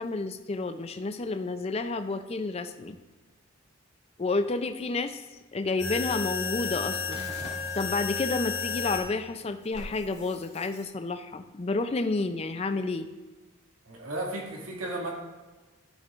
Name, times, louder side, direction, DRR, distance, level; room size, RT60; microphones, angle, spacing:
voice 1, 0.0-3.0 4.2-5.2 5.5-7.3 7.8-13.1, left 3 dB, 30° left, 9 dB, 0.4 m, -30 dB
sound 1, 5.8-9.0 9.7-10.8, left 5 dB, 50° left, 1.9 m, -33 dB
voice 2, 13.9-15.1, right 2 dB, 90° right, -2 dB, 2.1 m, -34 dB
12.5 x 7.1 x 2.5 m, 1.2 s
head